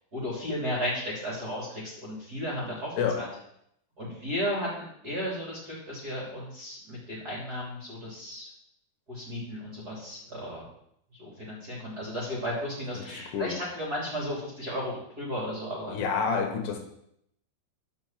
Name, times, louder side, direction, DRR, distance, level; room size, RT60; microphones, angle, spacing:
voice 1, 0.1-3.3 4.0-8.5 9.1-10.6 11.1-16.0, equal, 25° right, -5 dB, 2.9 m, -34 dB
voice 2, 13.0-13.5 15.9-16.8, left 6 dB, 75° left, 3 dB, 3.2 m, -29 dB
11.0 x 5.5 x 7.3 m, 0.74 s
omnidirectional pair, 5.1 m